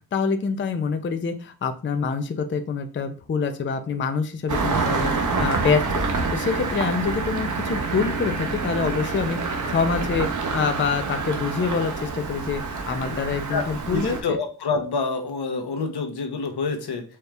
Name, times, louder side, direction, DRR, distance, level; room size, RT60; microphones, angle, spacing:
voice 1, 0.1-5.1 5.4-6.0 6.3-9.4 9.6-14.4, left 5 dB, 30° left, 7 dB, 0.4 m, -26 dB
Engine starting, 4.5-14.2, right 4 dB, 50° right, 0.8 m, -27 dB
voice 2, 13.9-17.0, left 4 dB, 80° left, 5 dB, 0.9 m, -27 dB
4.3 x 2.4 x 3.3 m, 0.36 s
wide cardioid pair, 95°, 39 cm